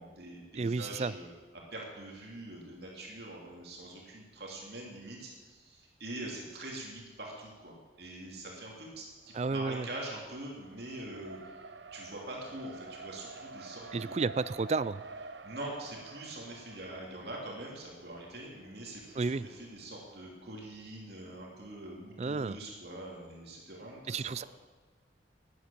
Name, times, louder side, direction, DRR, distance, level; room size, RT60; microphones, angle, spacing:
voice 1, 0.0-11.6 11.9-14.2 15.4-24.5, right 1 dB, 65° right, -2 dB, 2.8 m, -44 dB
voice 2, 0.6-1.1 9.3-9.9 13.9-15.0 19.2-19.5 22.2-22.6 24.1-24.4, right 4 dB, 35° right, 17 dB, 0.4 m, -32 dB
Race car auto racing, 9.2-20.2, right 3 dB, 85° right, 1.0 m, -50 dB
13.0 x 9.7 x 8.8 m, 1.4 s
head